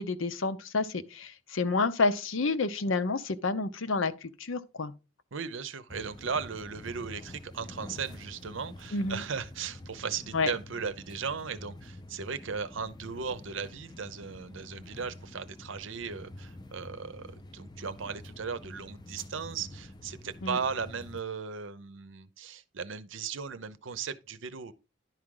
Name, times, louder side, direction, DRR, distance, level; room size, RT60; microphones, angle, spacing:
voice 1, 0.0-4.9 8.9-9.2 10.3-10.5 20.4-20.6, left 3 dB, 75° left, 0.7 m, -29 dB
voice 2, 5.3-24.7, right 5 dB, 70° right, 0.7 m, -37 dB
sound 1, 5.9-21.2, left 1 dB, 20° left, 0.5 m, -47 dB
11.0 x 4.8 x 3.8 m
head